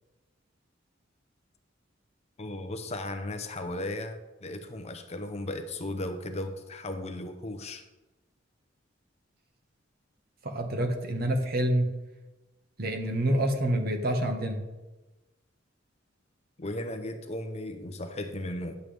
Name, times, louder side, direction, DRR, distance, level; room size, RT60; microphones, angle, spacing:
voice 1, 2.4-7.8 16.6-18.8, left 1 dB, 35° left, 8 dB, 0.8 m, -36 dB
voice 2, 10.4-11.9 12.8-14.6, right 1 dB, 55° right, 4 dB, 1.3 m, -27 dB
11.0 x 7.8 x 3.5 m, 1.1 s
head